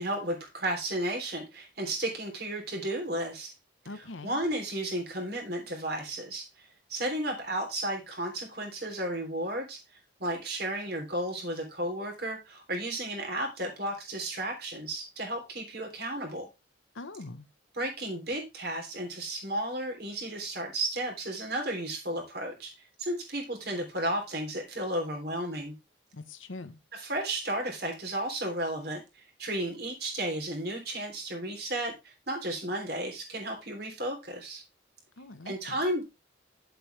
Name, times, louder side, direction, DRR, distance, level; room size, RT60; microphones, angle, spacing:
voice 1, 0.0-3.5 3.9-9.8 10.2-16.5 17.7-22.7 23.0-25.7 26.9-34.6 35.4-36.0, right 1 dB, 55° right, 3.3 m, -33 dB
voice 2, 3.8-4.4 16.9-17.5 26.1-26.8 35.2-35.8, left 2 dB, 85° left, 1.1 m, -43 dB
9.4 x 7.8 x 3.3 m
head